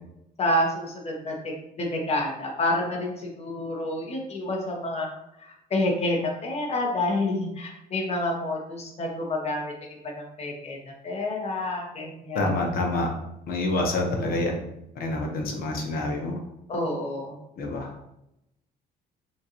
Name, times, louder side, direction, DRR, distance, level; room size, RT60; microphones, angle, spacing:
voice 1, 0.4-5.1 5.4-10.8 11.0-12.6 16.7-17.4, left 1 dB, 40° left, -1 dB, 1.3 m, -28 dB
voice 2, 12.3-13.1 13.5-14.6 15.0-16.4 17.6-17.9, left 2 dB, 60° left, 1 dB, 1.1 m, -27 dB
5.9 x 2.6 x 3.0 m, 0.84 s
cardioid pair, 110°, 17 cm